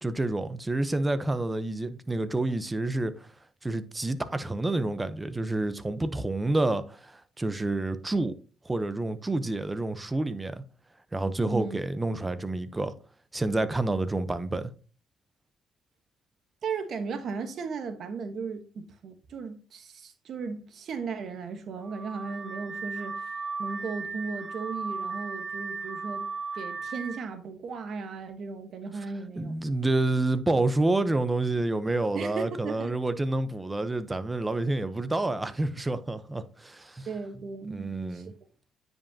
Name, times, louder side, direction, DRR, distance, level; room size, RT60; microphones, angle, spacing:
voice 1, 0.0-3.1 3.6-8.3 8.6-10.6 11.1-12.9 13.3-14.7 29.4-37.1 37.7-38.3, right 2 dB, 15° right, 0.8 m, -28 dB
voice 2, 11.4-11.8 16.6-23.2 23.6-26.3 26.5-29.6 32.1-32.9 37.1-38.2, right 5 dB, 60° right, 1.2 m, -36 dB
Car / Alarm, 21.8-27.3, right 4 dB, 35° right, 0.4 m, -36 dB
9.6 x 5.3 x 2.8 m
cardioid pair, 90°, 0 cm